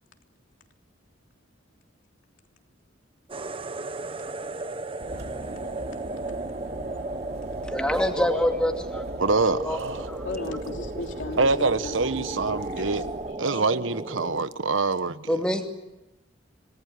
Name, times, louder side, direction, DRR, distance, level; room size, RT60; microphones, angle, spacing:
sound 1, 3.3-14.4, right 2 dB, 30° right, 0.9 m, -35 dB
sound 2, 5.0-13.3, right 1 dB, 55° right, 3.2 m, -39 dB
voice 1, 7.6-9.0 9.5-9.8 10.1-10.3 15.3-15.7, equal, 5° left, 3 dB, 2.6 m, -25 dB
voice 2, 9.2-10.0 11.4-13.0 13.4-15.3, right 3 dB, 80° right, 13 dB, 1.1 m, -25 dB
voice 3, 10.2-13.0 13.5-13.6, left 2 dB, 70° left, 3 dB, 3.3 m, -37 dB
27.0 x 19.5 x 9.5 m, 0.97 s
head